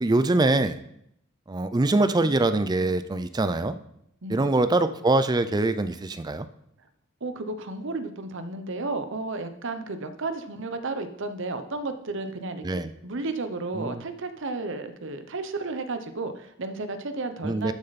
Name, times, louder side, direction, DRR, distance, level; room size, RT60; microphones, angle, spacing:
voice 1, 0.0-0.8 1.5-3.8 4.3-6.5 12.6-12.9 13.8-14.0 17.4-17.7, right 2 dB, 20° right, 12 dB, 0.4 m, -23 dB
voice 2, 4.2-4.7 7.2-17.7, right 3 dB, 65° right, 9 dB, 0.9 m, -33 dB
12.5 x 6.7 x 4.1 m, 0.75 s
head